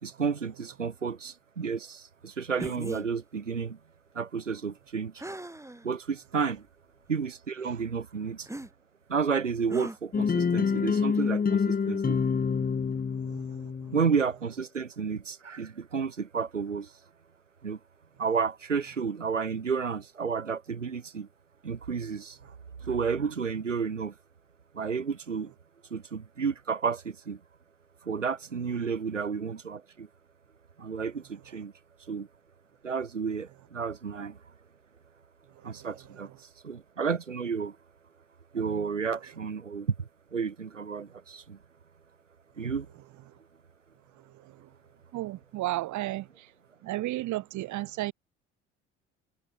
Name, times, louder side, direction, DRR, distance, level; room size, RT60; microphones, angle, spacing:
voice 1, 0.0-3.8 4.1-5.2 5.8-6.6 7.1-8.5 9.1-12.2 13.9-16.9 17.6-17.8 18.2-21.3 21.6-22.5 22.8-24.1 24.7-25.5 25.9-27.4 28.0-30.1 30.8-31.7 32.1-32.3 32.8-34.4 35.6-37.8 38.5-41.6 42.6-42.9, right 6 dB, 90° right, 2.5 m, -31 dB
sound 1, 2.6-3.1 5.2-5.8 6.5-6.6 8.5-8.7 9.7-10.0, right 1 dB, 10° right, 7.7 m, -38 dB
sound 2, 10.1-14.1, left 5 dB, 25° left, 1.9 m, -27 dB
voice 2, 13.3-13.7 45.1-46.4 46.8-48.1, right 16 dB, 50° right, 1.6 m, -33 dB
figure-of-eight pair, 60°, 36 cm